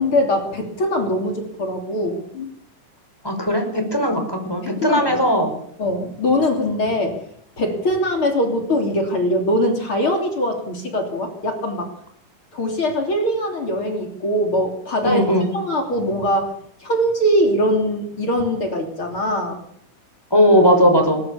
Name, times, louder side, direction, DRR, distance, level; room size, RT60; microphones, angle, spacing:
voice 1, 0.0-2.5 4.6-5.3 5.8-7.2 7.6-11.9 12.5-15.3 15.5-16.5 16.8-19.6, equal, 40° left, 3 dB, 3.7 m, -22 dB
voice 2, 3.2-5.5 15.0-15.5 20.3-21.2, equal, 5° left, 4 dB, 5.1 m, -17 dB
20.5 x 20.0 x 7.1 m, 0.69 s
omnidirectional pair, 3.8 m